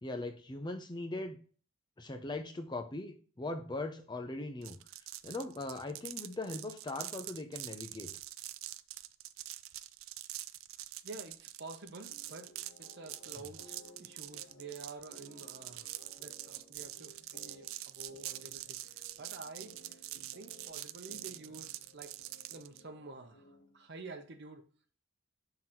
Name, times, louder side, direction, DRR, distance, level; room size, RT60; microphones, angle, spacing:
voice 1, 0.0-1.4 2.0-8.1 13.4-13.5, left 2 dB, 20° left, 0.6 m, -40 dB
sound 1, 4.6-22.8, right 15 dB, 90° right, 0.4 m, -45 dB
voice 2, 11.0-12.5 12.8-20.0 20.3-22.2 22.5-23.5 23.7-24.6, right 3 dB, 55° right, 0.8 m, -49 dB
sound 2, 12.1-23.9, equal, 55° left, 1.1 m, -59 dB
6.0 x 3.9 x 4.4 m
head